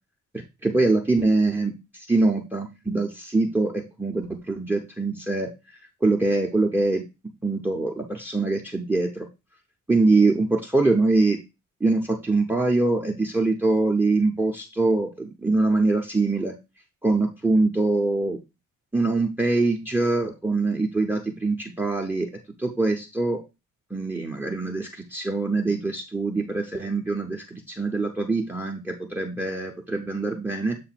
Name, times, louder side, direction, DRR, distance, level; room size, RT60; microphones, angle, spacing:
voice 1, 0.6-7.0 7.4-9.3 9.9-11.4 11.8-16.5 17.0-18.4 18.9-22.3 22.6-23.4 23.9-30.8, right 3 dB, 5° right, 4 dB, 0.6 m, -23 dB
7.5 x 2.6 x 5.7 m, 0.26 s
wide cardioid pair, 175°, 31 cm